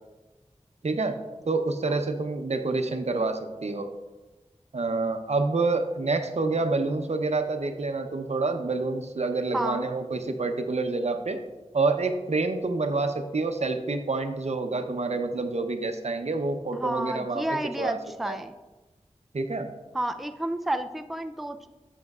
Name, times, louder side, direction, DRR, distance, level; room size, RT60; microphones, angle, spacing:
voice 1, 0.8-1.2 1.4-3.9 4.7-11.4 11.7-17.5 17.8-18.0 18.3-18.4 19.3-19.7, right 3 dB, 65° right, 6 dB, 0.7 m, -27 dB
voice 2, 9.5-9.9 16.7-18.5 19.9-21.7, right 1 dB, ahead, 7 dB, 0.4 m, -31 dB
8.2 x 7.6 x 2.4 m, 1.2 s
wide cardioid pair, 50°, 12 cm